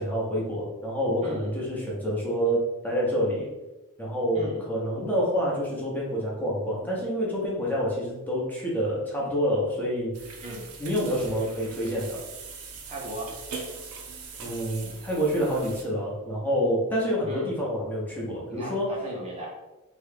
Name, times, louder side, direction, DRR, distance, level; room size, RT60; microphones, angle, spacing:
voice 1, 0.0-3.5 4.0-10.1 10.8-12.2 14.4-18.9, equal, 5° left, -5 dB, 0.8 m, -27 dB
voice 2, 4.3-4.7 10.4-10.7 12.9-13.3 17.3-17.5 18.5-19.5, right 1 dB, 30° right, -3 dB, 0.6 m, -36 dB
sound 1, 10.1-15.8, right 4 dB, 85° right, 0.5 m, -41 dB
3.0 x 2.3 x 3.3 m, 1.1 s
head